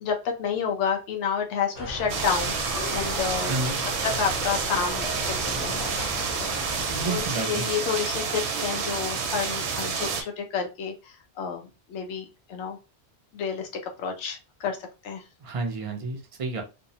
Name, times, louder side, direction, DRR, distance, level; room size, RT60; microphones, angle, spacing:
voice 1, 0.0-2.6 2.9-3.5 4.2-6.4 7.1-12.8 13.3-13.7 14.0-14.8 15.0-15.2, left 6 dB, 85° left, 3 dB, 0.9 m, -30 dB
sound 1, 1.7-7.3, left 2 dB, 45° left, 0.6 m, -36 dB
sound 2, 2.1-10.2, right 5 dB, 75° right, 0.9 m, -29 dB
voice 2, 3.5-3.9 6.9-7.6 15.4-16.6, right 3 dB, 45° right, 3 dB, 0.4 m, -30 dB
2.6 x 2.0 x 2.7 m, 0.28 s
omnidirectional pair, 1.2 m